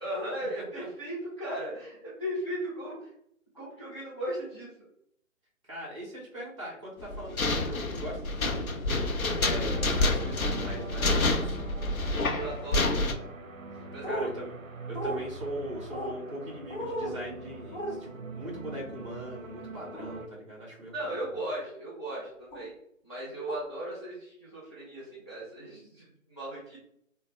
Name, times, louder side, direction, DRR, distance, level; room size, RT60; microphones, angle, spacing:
voice 1, 0.0-3.1 3.5-4.7 11.9-12.9 13.9-14.3 20.9-22.7 23.0-26.8, right 1 dB, 20° left, -9 dB, 0.5 m, -37 dB
voice 2, 5.7-8.8 9.2-11.6 14.1-14.5 14.9-21.2, right 1 dB, 20° right, -4 dB, 1.1 m, -40 dB
sound 1, 7.0-13.1, left 2 dB, 90° left, 0.7 m, -28 dB
sound 2, 9.7-20.3, right 3 dB, 70° right, 0.6 m, -43 dB
sound 3, 14.0-14.3 14.9-15.2 15.9-16.2 16.7-17.1 17.7-17.9 19.9-20.1 21.0-21.3 22.5-22.7 23.5-23.6, right 1 dB, 40° left, 0.9 m, -34 dB
3.8 x 2.1 x 3.1 m, 0.74 s
figure-of-eight pair, 145°, 41 cm